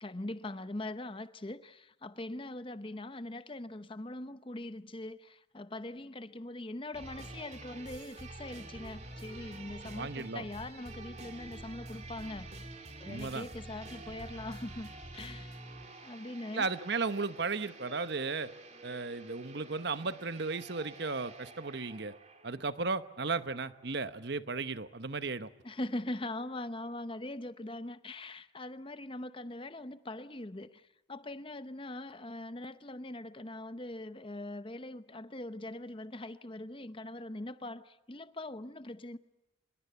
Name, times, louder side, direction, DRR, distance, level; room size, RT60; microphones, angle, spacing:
voice 1, 0.0-12.7 13.0-15.6 16.0-16.7 25.6-39.2, left 1 dB, 25° left, 0.8 m, -42 dB
sound 1, 6.9-22.9 23.2-23.3, right 2 dB, 35° right, 2.5 m, -48 dB
voice 2, 10.0-10.5 13.0-13.5 16.5-18.5 18.8-22.2 22.4-25.5, right 4 dB, 55° right, 1.0 m, -35 dB
25.0 x 22.0 x 8.3 m
head